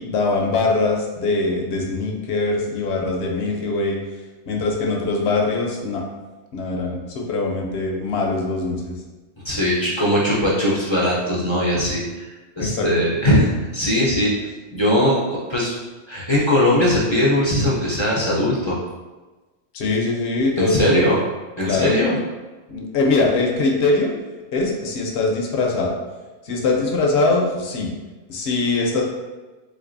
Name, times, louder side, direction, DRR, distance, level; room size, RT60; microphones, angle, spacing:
voice 1, 0.0-4.0 4.5-6.0 6.5-8.9 12.6-12.9 19.7-21.1 21.6-22.0 22.7-24.1 24.5-25.9 26.4-27.9 28.3-29.0, left 3 dB, 65° left, 0 dB, 0.9 m, -22 dB
voice 2, 9.4-12.2 12.6-14.3 14.7-15.7 16.1-18.8 20.6-21.2 21.6-22.2, left 1 dB, 35° left, -6 dB, 0.5 m, -20 dB
3.8 x 3.3 x 2.5 m, 1.2 s
omnidirectional pair, 1.3 m